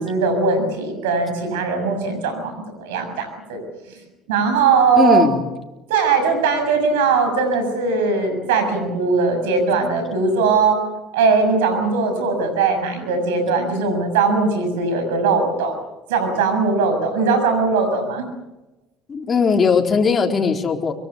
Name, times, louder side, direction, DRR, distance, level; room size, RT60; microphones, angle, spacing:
voice 1, 0.0-3.6 4.3-5.3 5.9-10.8 11.1-15.8 16.1-18.2, right 4 dB, 85° right, 8 dB, 6.8 m, -19 dB
voice 2, 4.9-5.4 19.1-20.9, left 5 dB, 35° left, 2 dB, 4.2 m, -18 dB
25.0 x 21.5 x 8.2 m, 1.0 s
hypercardioid pair, 70°, 0 cm